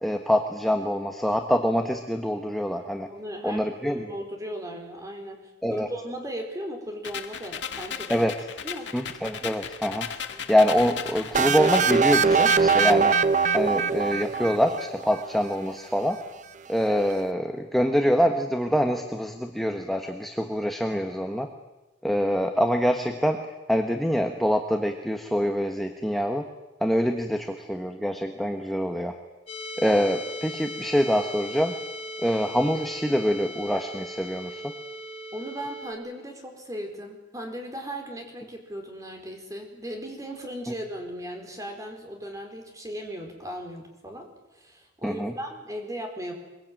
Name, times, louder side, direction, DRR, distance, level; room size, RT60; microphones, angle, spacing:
voice 1, 0.0-3.1 3.4-4.1 5.6-5.9 8.1-8.3 8.9-10.1 10.5-13.2 13.5-16.2 16.7-21.5 22.0-23.4 23.7-26.4 26.8-29.1 29.8-31.7 32.2-34.7 45.0-45.3, equal, ahead, 4 dB, 1.3 m, -25 dB
voice 2, 3.1-8.3 8.6-8.9 10.3-10.5 35.3-44.3 44.5-46.3, equal, 15° right, 3 dB, 4.6 m, -37 dB
sound 1, 7.0-13.0, left 7 dB, 65° left, 1.8 m, -36 dB
sound 2, 11.3-15.1, right 5 dB, 40° right, 0.9 m, -22 dB
sound 3, 29.5-35.9, equal, 30° left, 3.7 m, -38 dB
23.5 x 23.0 x 9.2 m, 1.1 s
head